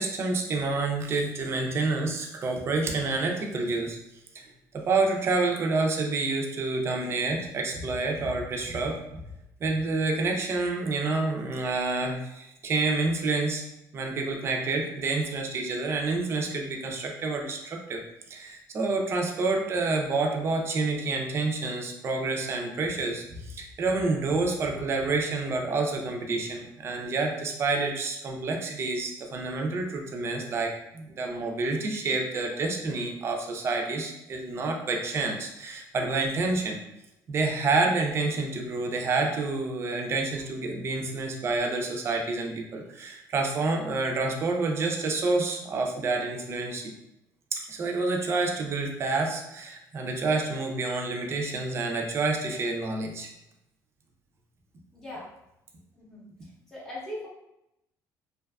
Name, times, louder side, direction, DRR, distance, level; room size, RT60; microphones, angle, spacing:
voice 1, 0.0-4.0 4.3-4.5 4.7-9.0 9.6-13.6 13.9-36.8 37.3-46.9 47.5-53.3, right 3 dB, 35° right, 2 dB, 0.4 m, -28 dB
voice 2, 54.9-55.3 56.0-57.3, left 1 dB, 5° left, -8 dB, 0.6 m, -40 dB
2.5 x 2.3 x 2.3 m, 0.86 s
cardioid pair, 130°, 7 cm